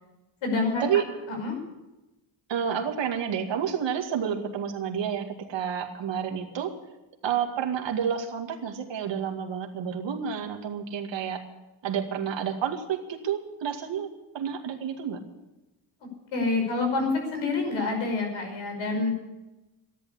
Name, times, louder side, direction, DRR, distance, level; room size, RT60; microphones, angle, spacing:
voice 1, 0.4-1.0 1.3-1.6 16.3-19.1, left 3 dB, 75° left, 3 dB, 5.7 m, -27 dB
voice 2, 2.5-6.7 7.2-11.4 11.8-14.1 14.3-15.2, right 8 dB, 65° right, 3 dB, 2.2 m, -29 dB
13.5 x 11.0 x 8.5 m, 1.0 s
cardioid pair, 95°, 47 cm